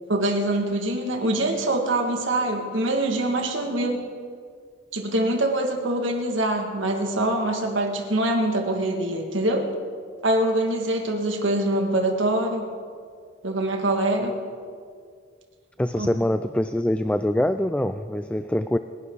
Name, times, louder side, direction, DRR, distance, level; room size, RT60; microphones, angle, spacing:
voice 1, 0.1-4.0 4.9-9.6 10.2-12.7 13.4-14.4 16.0-16.1, right 1 dB, 85° right, 2 dB, 2.2 m, -24 dB
voice 2, 15.8-18.8, left 1 dB, 5° left, 10 dB, 0.3 m, -24 dB
27.5 x 11.5 x 4.0 m, 2.1 s
head